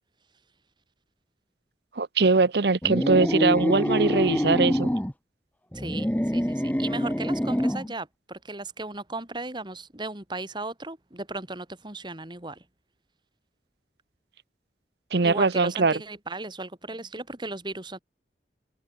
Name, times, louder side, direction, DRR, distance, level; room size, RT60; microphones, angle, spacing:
voice 1, 2.0-4.9 15.1-15.9, right 4 dB, 65° right, 0.8 m, -22 dB
sound 1, 2.8-5.1 5.7-7.9, equal, 10° left, 1.4 m, -26 dB
voice 2, 5.7-12.6 15.2-18.0, right 2 dB, 25° right, 3.1 m, -36 dB
head